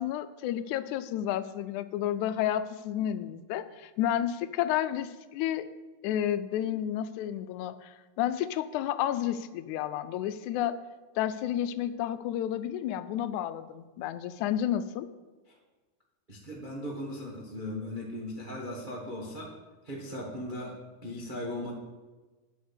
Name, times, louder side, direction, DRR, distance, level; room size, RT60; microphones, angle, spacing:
voice 1, 0.0-5.7 6.0-10.8 11.2-15.1, left 11 dB, 80° left, 13 dB, 1.9 m, -31 dB
voice 2, 16.3-19.5 19.8-21.7, left 1 dB, 90° right, -3 dB, 0.4 m, -38 dB
9.2 x 6.5 x 6.8 m, 1.2 s
omnidirectional pair, 3.5 m